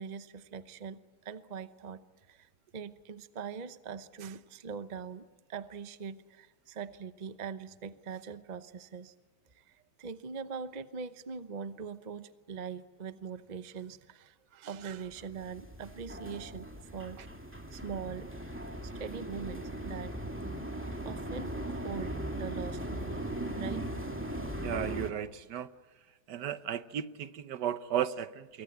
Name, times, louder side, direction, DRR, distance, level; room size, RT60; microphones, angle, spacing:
voice 1, 0.0-9.1 9.5-17.2 17.7-18.3 18.8-20.1 21.0-23.9, right 6 dB, 35° right, 12 dB, 0.8 m, -42 dB
sound 1, 15.1-25.1, right 1 dB, 5° right, 2.2 m, -39 dB
voice 2, 24.6-25.7 26.3-28.6, right 9 dB, 75° right, 13 dB, 1.6 m, -34 dB
26.0 x 23.5 x 8.2 m, 1.3 s
omnidirectional pair, 1.8 m